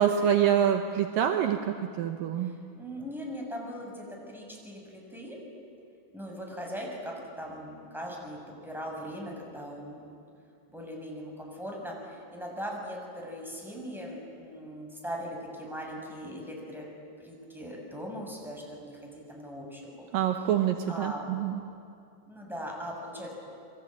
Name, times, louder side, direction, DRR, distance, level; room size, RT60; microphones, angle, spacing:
voice 1, 0.0-2.5 20.1-21.6, right 9 dB, 80° right, 6 dB, 2.0 m, -26 dB
voice 2, 2.4-5.4 6.1-10.1 10.7-16.9 17.2-20.5 20.9-21.3 22.2-23.3, equal, ahead, -1 dB, 6.0 m, -40 dB
28.5 x 23.0 x 8.9 m, 2.5 s
omnidirectional pair, 5.3 m